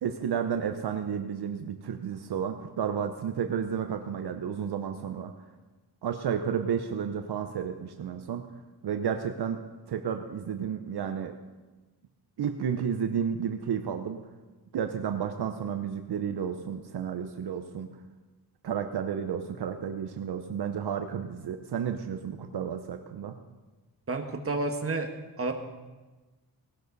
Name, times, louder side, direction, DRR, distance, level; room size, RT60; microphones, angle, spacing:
voice 1, 0.0-5.3 6.0-8.5 8.8-11.4 12.4-14.3 14.7-17.9 18.6-23.4, right 7 dB, 70° right, 7 dB, 0.9 m, -32 dB
voice 2, 24.1-25.1 25.4-25.5, right 3 dB, 35° right, 5 dB, 1.5 m, -30 dB
18.0 x 12.0 x 4.0 m, 1.2 s
wide cardioid pair, 100°, 41 cm